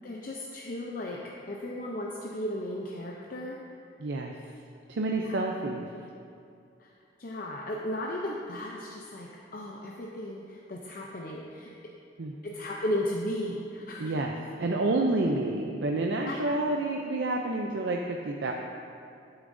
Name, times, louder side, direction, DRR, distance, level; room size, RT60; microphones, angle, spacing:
voice 1, 0.0-1.2 1.5-3.6 5.2-5.4 6.8-6.9 7.2-11.7 12.4-14.1 16.2-16.3, left 1 dB, 50° left, -2 dB, 0.6 m, -35 dB
voice 2, 4.0-4.3 4.9-5.9 12.2-12.3 14.0-18.5, right 2 dB, 80° right, 1 dB, 0.5 m, -29 dB
11.5 x 7.1 x 2.6 m, 2.5 s
head